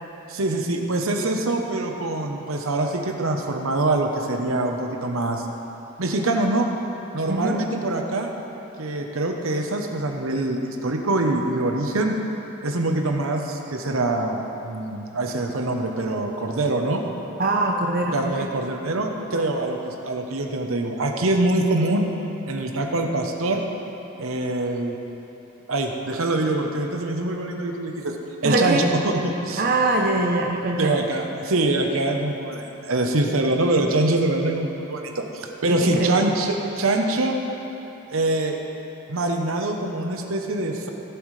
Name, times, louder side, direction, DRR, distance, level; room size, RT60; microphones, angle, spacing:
voice 1, 0.3-5.5 6.0-6.7 7.1-8.3 8.8-12.2 12.6-17.0 18.1-22.1 22.5-23.6 24.2-24.9 25.7-28.1 28.4-29.6 30.8-37.4 38.1-38.6 39.1-40.9, right 2 dB, 75° right, 3 dB, 0.9 m, -24 dB
voice 2, 17.4-18.5 28.4-28.9 29.6-31.0 35.7-36.3, right 2 dB, 45° right, 0 dB, 0.6 m, -23 dB
16.0 x 7.8 x 3.3 m, 3.0 s
head